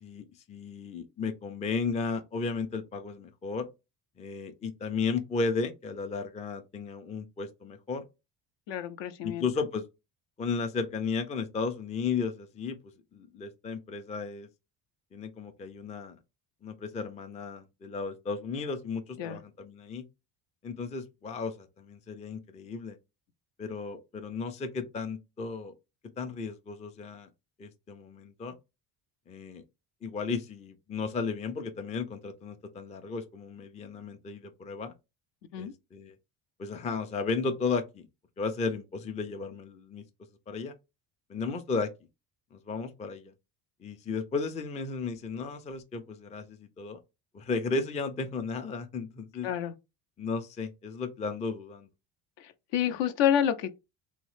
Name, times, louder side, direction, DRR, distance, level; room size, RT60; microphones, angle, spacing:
voice 1, 0.0-3.7 4.2-8.1 9.2-9.8 10.4-12.8 13.1-14.5 15.1-16.2 16.6-20.0 20.6-23.0 23.6-25.7 26.2-27.3 27.6-28.5 29.3-29.6 30.0-34.9 35.6-36.1 36.6-38.1 38.4-40.0 40.5-40.7 41.3-41.9 42.5-43.3 43.8-47.0 47.3-49.5 50.2-51.9, left 4 dB, 15° left, 0.4 m, -34 dB
voice 2, 8.7-9.4 19.2-19.4 35.5-35.7 49.4-49.7 52.4-53.8, left 10 dB, 60° left, 0.6 m, -29 dB
2.9 x 2.1 x 3.1 m
supercardioid pair, 75°, 49 cm